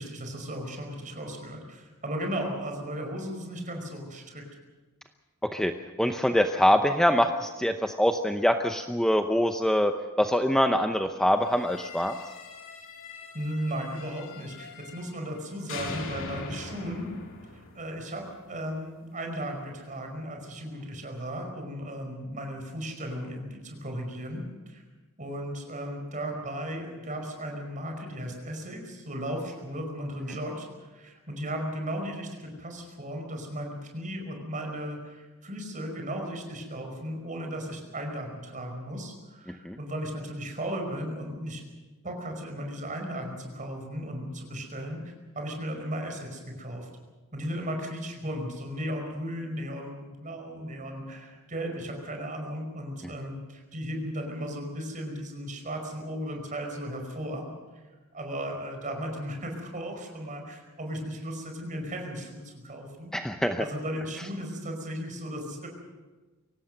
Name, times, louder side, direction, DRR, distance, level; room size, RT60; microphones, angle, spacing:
voice 1, 0.0-4.5 13.3-17.1 17.5-24.8 25.2-41.6 42.0-46.9 47.3-57.5 58.1-63.1 63.6-65.7, equal, 35° right, 3 dB, 5.2 m, -36 dB
voice 2, 6.0-9.9 10.2-12.2 39.6-39.8 63.1-63.6, equal, 5° left, 5 dB, 0.7 m, -24 dB
sound 1, 11.5-15.4 15.7-18.7, left 3 dB, 60° left, 3.0 m, -42 dB
24.0 x 18.0 x 6.7 m, 1.3 s
head